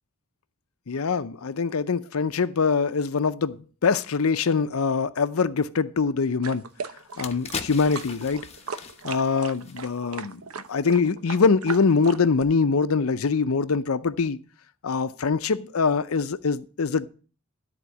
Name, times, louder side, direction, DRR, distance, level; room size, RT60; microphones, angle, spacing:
voice 1, 0.9-6.6 7.2-8.5 9.0-10.4 10.7-14.4 14.8-17.1, left 4 dB, 80° left, 0.6 m, -23 dB
sound 1, 6.4-12.4, right 5 dB, 90° right, 0.9 m, -38 dB
sound 2, 6.5-6.6 7.0-10.3 10.6-10.8, left 5 dB, 30° left, 1.0 m, -39 dB
13.0 x 4.4 x 8.3 m
head